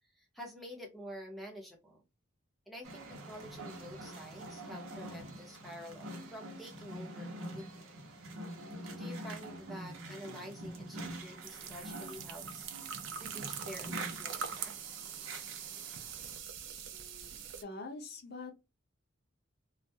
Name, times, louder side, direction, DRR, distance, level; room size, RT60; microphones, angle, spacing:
voice 1, 0.1-2.0 2.7-7.9 8.9-12.7 13.2-14.7, equal, ahead, 0.6 m, -48 dB
sound 1, 2.8-16.4, right 1 dB, 80° right, 0.7 m, -45 dB
sound 2, 11.4-17.6, right 7 dB, 55° right, 0.3 m, -43 dB
voice 2, 16.9-18.5, left 3 dB, 45° left, 0.6 m, -46 dB
2.3 x 2.0 x 2.6 m
head